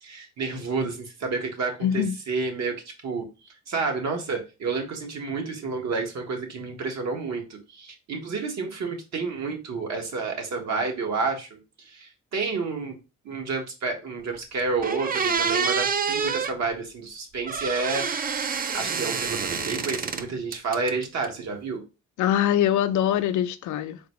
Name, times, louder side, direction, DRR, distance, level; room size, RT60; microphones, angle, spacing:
voice 1, 0.0-3.3 3.7-13.0 13.2-18.1 18.7-21.8, right 4 dB, 60° right, 1.4 m, -30 dB
voice 2, 1.8-2.2 22.2-24.0, left 10 dB, 75° left, 0.5 m, -23 dB
sound 1, 14.3-14.4 14.8-16.6 17.5-20.2 20.5-21.3, right 6 dB, 30° right, 0.4 m, -27 dB
4.0 x 3.3 x 3.0 m
cardioid pair, 90°, 30 cm